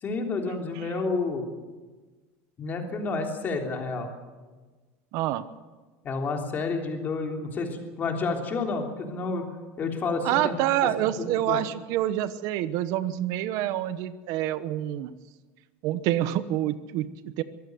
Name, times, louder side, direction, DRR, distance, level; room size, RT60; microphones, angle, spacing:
voice 1, 0.0-1.5 2.6-4.1 6.0-9.5 9.8-10.5 11.0-11.6, left 3 dB, 25° left, 2 dB, 3.3 m, -30 dB
voice 2, 5.1-5.4 10.2-15.1 15.8-17.4, right 13 dB, 55° right, 14 dB, 1.1 m, -27 dB
23.5 x 16.0 x 7.9 m, 1.3 s
cardioid pair, 155°, 7 cm